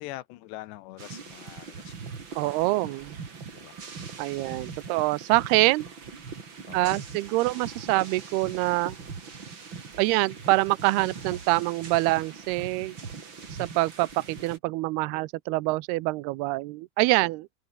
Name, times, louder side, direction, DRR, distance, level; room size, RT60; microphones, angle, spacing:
voice 1, 0.0-1.9 3.5-3.8 6.7-7.0, left 16 dB, 90° left, 3.3 m, -43 dB
sound 1, 1.0-14.6, right 5 dB, 30° right, 3.1 m, -41 dB
voice 2, 2.4-3.2 4.2-5.9 6.7-9.0 10.0-13.0 13.6-17.5, right 21 dB, 80° right, 2.6 m, -25 dB
open air
omnidirectional pair, 4.8 m